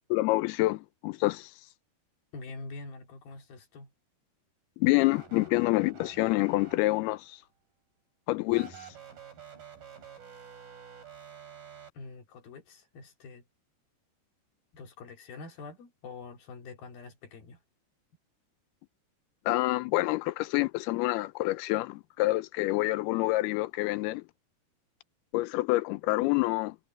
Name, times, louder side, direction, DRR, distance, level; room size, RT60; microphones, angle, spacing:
voice 1, 0.1-1.5 4.8-7.4 8.3-8.9 19.5-24.2 25.3-26.8, left 19 dB, 80° left, 2.3 m, -27 dB
voice 2, 2.3-3.9 11.9-13.4 14.7-17.6, left 3 dB, 60° left, 4.4 m, -45 dB
sound 1, 5.0-7.2 8.5-11.9, right 6 dB, 55° right, 6.9 m, -49 dB
omnidirectional pair, 5.1 m